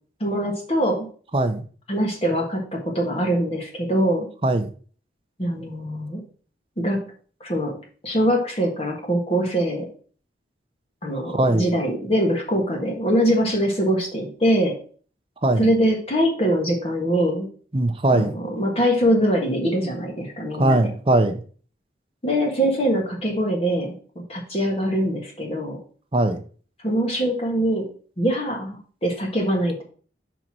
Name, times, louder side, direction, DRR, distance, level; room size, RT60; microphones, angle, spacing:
voice 1, 0.2-1.1 1.9-4.3 5.4-6.2 6.8-7.1 7.4-7.8 8.0-9.9 11.0-14.7 15.6-17.5 18.1-18.3 18.6-20.9 22.2-23.9 24.3-25.8 26.8-27.9 28.2-29.8, equal, 35° left, 0 dB, 1.5 m, -23 dB
voice 2, 1.3-1.6 4.4-4.7 11.3-11.7 15.4-15.7 17.7-18.3 20.6-21.4 26.1-26.4, right 2 dB, 30° right, 6 dB, 0.7 m, -20 dB
5.3 x 4.5 x 6.0 m, 0.43 s
head